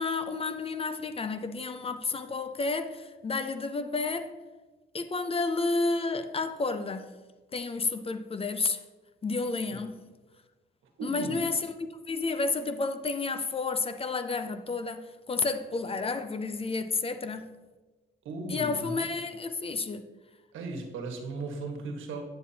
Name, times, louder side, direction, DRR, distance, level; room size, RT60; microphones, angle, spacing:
voice 1, 0.0-4.4 4.9-7.1 7.5-8.8 9.2-10.0 11.0-11.7 12.1-17.5 18.5-20.1, left 3 dB, 30° left, 0.5 m, -31 dB
voice 2, 11.0-11.4 18.2-19.1 20.5-22.2, right 3 dB, 80° right, 1.4 m, -36 dB
9.0 x 7.6 x 2.8 m
cardioid pair, 90°, 20 cm